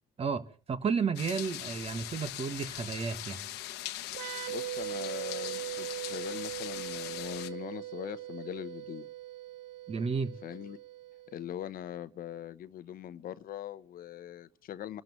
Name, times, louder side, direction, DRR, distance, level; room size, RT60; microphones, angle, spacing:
voice 1, 0.2-3.5 9.9-10.4, right 5 dB, 35° right, 1.4 m, -32 dB
sound 1, 1.2-7.5, left 14 dB, 85° left, 1.1 m, -41 dB
sound 2, 4.1-11.6, right 15 dB, 90° right, 0.9 m, -40 dB
voice 2, 4.5-9.1 10.4-10.8 11.3-15.0, left 11 dB, 60° left, 0.9 m, -41 dB
29.0 x 13.0 x 3.1 m
cardioid pair, 110°, 17 cm